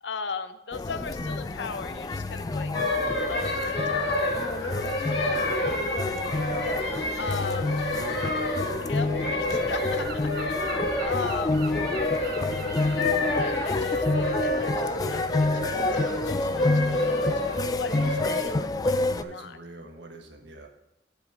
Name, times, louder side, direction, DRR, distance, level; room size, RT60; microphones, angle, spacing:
voice 1, 0.0-2.8 3.3-7.6 8.8-11.6 13.3-17.4 17.7-19.6, left 5 dB, 85° left, 10 dB, 0.7 m, -38 dB
sound 1, 0.7-19.2, left 2 dB, 20° left, 0.3 m, -29 dB
sound 2, 2.7-18.4, left 1 dB, 70° left, 1.5 m, -29 dB
voice 2, 7.3-8.3 19.1-20.7, right 1 dB, 75° right, 2 dB, 1.3 m, -43 dB
Gull seagull, 8.9-14.7, right 5 dB, 60° right, 0.8 m, -43 dB
8.1 x 5.2 x 6.9 m, 0.91 s
head